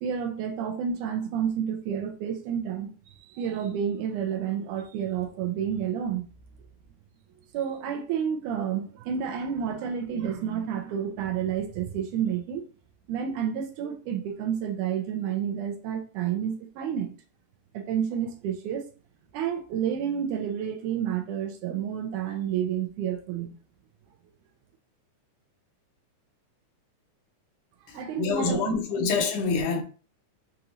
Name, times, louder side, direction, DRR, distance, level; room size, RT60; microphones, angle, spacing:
voice 1, 0.0-2.9 3.2-6.3 7.5-12.7 13.1-17.2 17.7-18.9 19.3-23.6 27.9-28.7, right 8 dB, 85° right, 2.3 m, -30 dB
voice 2, 27.9-29.8, left 4 dB, 85° left, 2.4 m, -27 dB
6.6 x 2.6 x 2.8 m
omnidirectional pair, 3.5 m